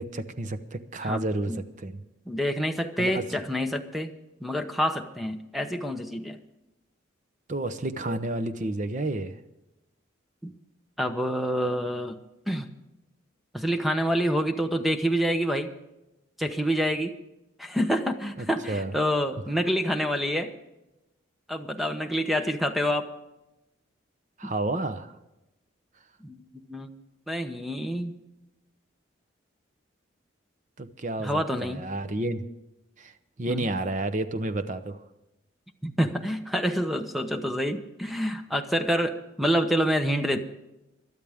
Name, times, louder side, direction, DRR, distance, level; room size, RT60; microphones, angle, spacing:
voice 1, 0.0-2.0 3.0-3.3 7.5-9.4 18.7-18.9 24.4-25.1 30.8-32.4 33.0-33.1 33.4-35.0, right 2 dB, 40° right, 10 dB, 0.8 m, -30 dB
voice 2, 1.0-1.6 2.3-4.1 4.4-6.4 10.4-10.5 11.0-12.2 12.5-12.7 13.5-15.7 16.4-17.2 17.6-20.5 21.5-23.1 24.4-24.5 26.2-26.9 27.3-28.2 31.2-31.9 33.5-33.7 35.8-40.4, equal, ahead, 7 dB, 0.9 m, -27 dB
22.0 x 12.5 x 3.6 m, 0.96 s
head